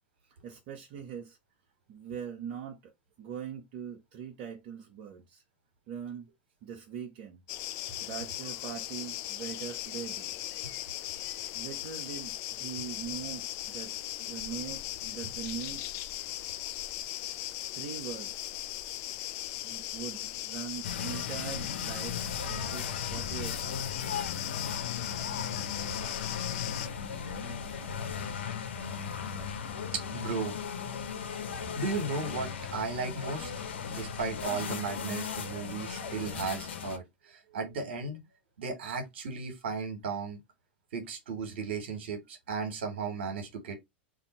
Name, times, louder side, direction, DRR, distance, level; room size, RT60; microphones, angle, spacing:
voice 1, 0.4-1.4 1.9-2.9 3.2-5.4 5.9-6.3 6.6-7.4 8.0-10.3 11.5-13.9 14.2-15.9 17.7-18.5 19.6-24.0, right 8 dB, 55° right, 0.9 m, -41 dB
sound 1, 7.5-26.9, left 15 dB, 50° left, 0.3 m, -38 dB
sound 2, 20.8-37.0, left 6 dB, 80° left, 0.7 m, -37 dB
voice 2, 29.9-30.5 31.7-33.5 33.9-38.2 38.6-40.4 40.9-43.8, right 4 dB, 75° right, 1.3 m, -35 dB
2.7 x 2.5 x 4.0 m
hypercardioid pair, 100°, 6 cm